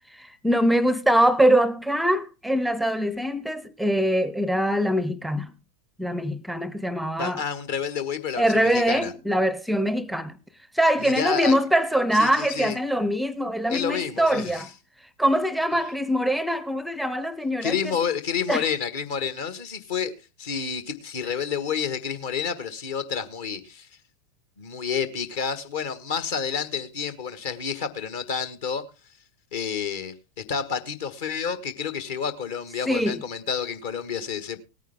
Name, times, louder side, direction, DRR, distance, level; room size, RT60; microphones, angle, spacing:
voice 1, 0.1-5.5 6.0-7.4 8.4-10.4 10.7-14.7 15.2-17.8 18.5-18.7 32.9-33.2, equal, ahead, 0.6 m, -23 dB
voice 2, 7.2-9.1 11.0-11.5 12.2-12.8 13.7-14.6 17.6-20.1 20.4-23.9 24.6-28.8 29.5-34.6, left 7 dB, 55° left, 1.5 m, -29 dB
18.0 x 9.2 x 3.5 m
figure-of-eight pair, 90°, 0 cm